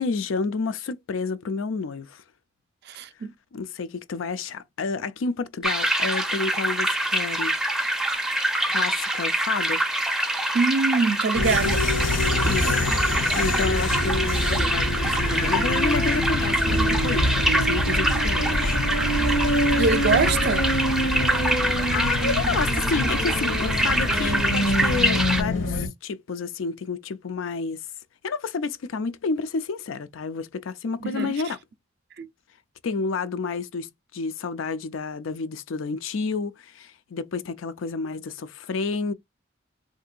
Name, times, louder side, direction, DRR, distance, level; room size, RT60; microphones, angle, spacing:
voice 1, 0.0-2.2 3.5-7.6 8.7-9.8 12.4-12.9 13.4-18.8 21.6-27.8 28.2-31.6 32.8-39.1, left 4 dB, 90° left, 0.4 m, -30 dB
voice 2, 2.9-3.3 10.5-11.9 19.8-20.7 31.1-31.3 32.2-32.3, right 4 dB, 55° right, 0.5 m, -23 dB
sound 1, 5.6-25.4, right 1 dB, 5° right, 0.4 m, -25 dB
sound 2, 11.3-25.9, left 1 dB, 70° left, 0.8 m, -25 dB
3.6 x 2.7 x 2.4 m
head